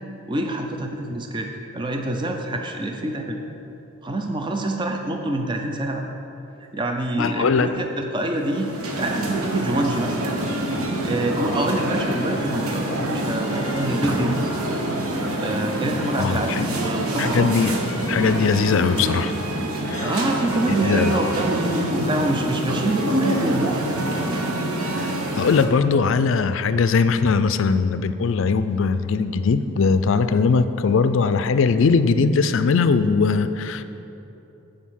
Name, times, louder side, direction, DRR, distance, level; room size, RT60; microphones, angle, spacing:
voice 1, 0.3-3.4 4.0-6.0 6.7-8.7 9.0-10.4 11.0-14.5 15.4-17.5 20.0-24.3, right 1 dB, 20° right, 3 dB, 0.5 m, -26 dB
voice 2, 7.2-7.8 16.2-16.7 17.2-17.8 18.1-19.3 19.9-20.1 20.8-21.1 24.9-33.8, left 5 dB, 60° left, 11 dB, 0.4 m, -20 dB
sound 1, 8.3-25.7, right 1 dB, 85° right, 1.0 m, -26 dB
8.3 x 5.0 x 7.2 m, 3.0 s
head